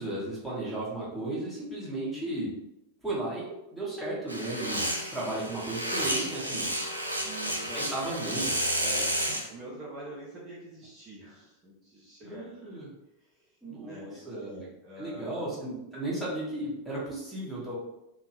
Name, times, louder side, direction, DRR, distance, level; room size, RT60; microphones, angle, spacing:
voice 1, 0.0-2.5 3.0-4.8 5.1-6.7 7.7-8.4 12.2-12.9 13.6-14.7 15.0-17.7, right 2 dB, 5° left, -7 dB, 1.1 m, -35 dB
sound 1, 4.3-9.5, right 1 dB, 85° right, 0.4 m, -31 dB
voice 2, 7.2-8.2 8.7-12.7 13.2-15.5, right 1 dB, 30° right, -5 dB, 0.7 m, -45 dB
2.8 x 2.2 x 2.8 m, 0.88 s
figure-of-eight pair, 90°, 0 cm